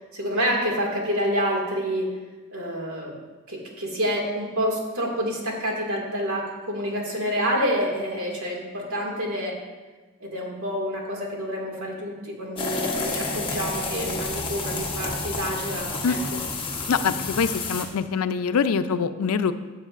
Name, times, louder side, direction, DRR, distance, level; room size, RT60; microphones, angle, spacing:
voice 1, 0.1-2.1 2.5-3.1 3.5-9.6 10.2-16.2, equal, 75° right, -1 dB, 2.1 m, -28 dB
sound 1, 12.6-17.8, left 3 dB, 25° left, 1.1 m, -30 dB
voice 2, 16.9-19.5, left 6 dB, 85° left, 11 dB, 0.5 m, -24 dB
15.0 x 7.3 x 2.5 m, 1.3 s
head